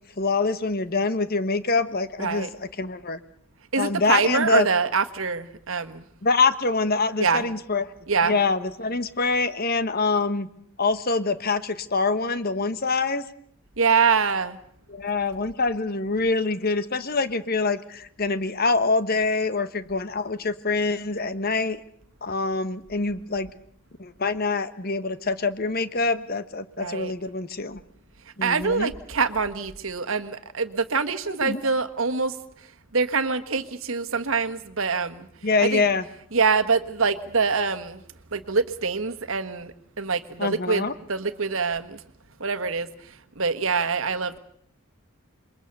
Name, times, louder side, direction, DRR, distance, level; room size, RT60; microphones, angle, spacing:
voice 1, 0.2-3.2 3.8-4.7 6.2-7.8 8.2-10.5 10.8-13.2 14.9-21.8 22.2-23.5 24.0-27.8 28.4-28.9 31.4-31.6 35.4-36.0 40.4-40.9, left 3 dB, 45° left, 1.2 m, -25 dB
voice 2, 2.2-2.5 3.7-6.0 7.2-7.4 8.1-8.3 13.8-14.6 26.8-27.1 28.4-32.3 32.9-35.3 35.6-35.8 36.3-38.0 38.3-42.0 42.4-42.9 43.4-44.4, right 5 dB, 65° right, 1.5 m, -25 dB
28.0 x 22.5 x 6.8 m
head